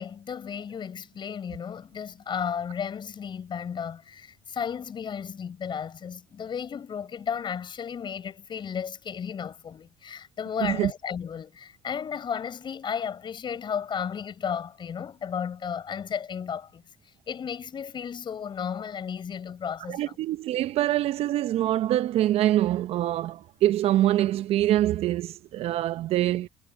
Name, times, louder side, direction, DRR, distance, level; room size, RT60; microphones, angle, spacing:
voice 1, 0.0-20.2, left 7 dB, 45° left, 6.6 m, -34 dB
voice 2, 19.9-26.5, right 13 dB, 60° right, 0.8 m, -24 dB
hypercardioid pair, 70°, 12 cm